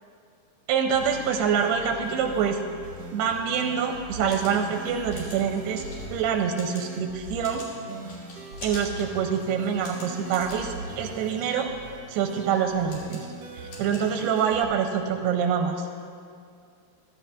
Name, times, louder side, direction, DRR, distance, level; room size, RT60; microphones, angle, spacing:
voice 1, 0.7-2.6 3.1-5.8 6.1-7.7 8.6-11.7 12.1-13.3 13.6-15.9, right 7 dB, 85° right, 4 dB, 2.6 m, -26 dB
sound 1, 0.9-14.6, right 2 dB, 70° right, 1.5 m, -41 dB
sound 2, 4.3-14.7, left 2 dB, 65° left, 3.7 m, -46 dB
14.5 x 14.0 x 2.4 m, 2.3 s
omnidirectional pair, 4.7 m